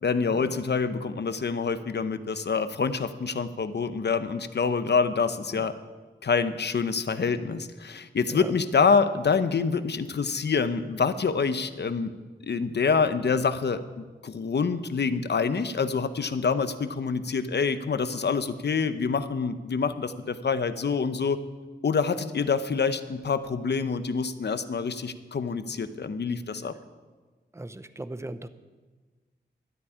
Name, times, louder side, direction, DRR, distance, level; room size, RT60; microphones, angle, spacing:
voice 1, 0.0-5.7 6.2-12.1 12.4-21.4 21.8-26.7, left 5 dB, 65° left, 11 dB, 0.8 m, -26 dB
voice 2, 27.5-28.5, right 1 dB, 15° right, 11 dB, 0.7 m, -38 dB
12.5 x 8.7 x 9.8 m, 1.4 s
wide cardioid pair, 125°, 19 cm